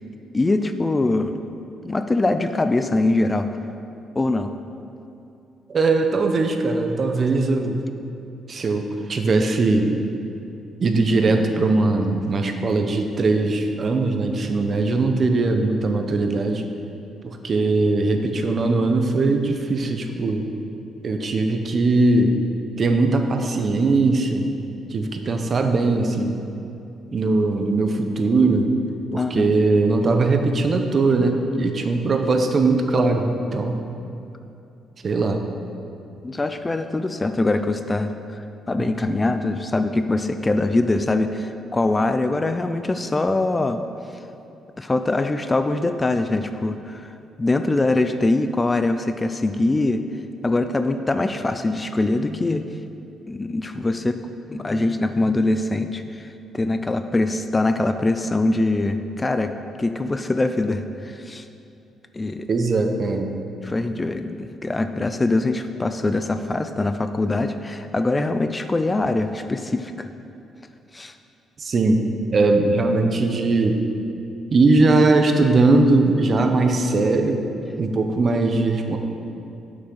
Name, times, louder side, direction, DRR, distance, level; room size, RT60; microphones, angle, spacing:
voice 1, 0.3-1.4 1.8-3.5 4.1-4.5 29.2-29.5 36.2-43.8 44.8-47.1 47.4-50.0 50.4-52.8 53.3-54.2 54.5-59.5 59.8-61.5 62.1-62.5 63.6-70.1 70.9-71.1, left 2 dB, 20° left, 9 dB, 0.3 m, -23 dB
voice 2, 5.7-7.8 8.5-10.0 10.8-16.7 17.2-20.5 21.0-22.4 22.8-24.5 24.9-26.4 27.1-28.7 29.1-33.8 35.0-35.4 38.8-38.9 62.5-63.4 71.6-72.0 72.3-73.8 74.5-79.0, right 3 dB, 45° right, 5 dB, 0.8 m, -20 dB
6.2 x 6.0 x 6.4 m, 2.7 s
cardioid pair, 90°, 0 cm